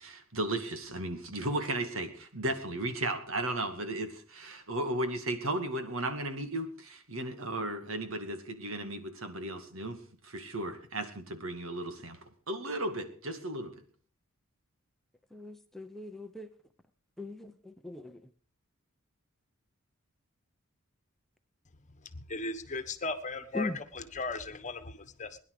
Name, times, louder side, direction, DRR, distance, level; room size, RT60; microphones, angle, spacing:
voice 1, 0.0-10.0 10.2-13.8, right 1 dB, 70° right, 8 dB, 2.4 m, -35 dB
voice 2, 15.3-16.5 17.2-18.3 23.5-23.8, left 2 dB, ahead, 6 dB, 0.8 m, -39 dB
voice 3, 22.1-25.4, left 3 dB, 35° left, 10 dB, 1.4 m, -37 dB
21.5 x 11.0 x 5.0 m, 0.43 s
head